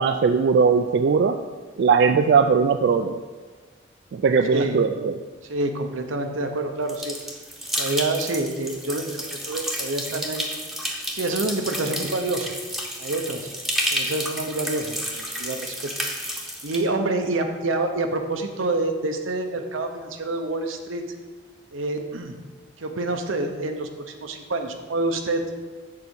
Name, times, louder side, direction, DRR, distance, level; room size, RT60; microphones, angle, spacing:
voice 1, 0.0-1.4 1.8-3.2 4.1-5.2, right 5 dB, 60° right, 7 dB, 0.3 m, -19 dB
voice 2, 4.5-4.8 5.5-7.2 7.8-10.5 11.1-12.5 13.0-13.5 13.9-15.9 16.6-21.0 21.7-22.4 22.8-25.4, right 2 dB, 85° right, 5 dB, 0.8 m, -27 dB
sound 1, 6.9-16.8, equal, ahead, 0.8 m, -31 dB
6.7 x 4.8 x 6.9 m, 1.4 s
head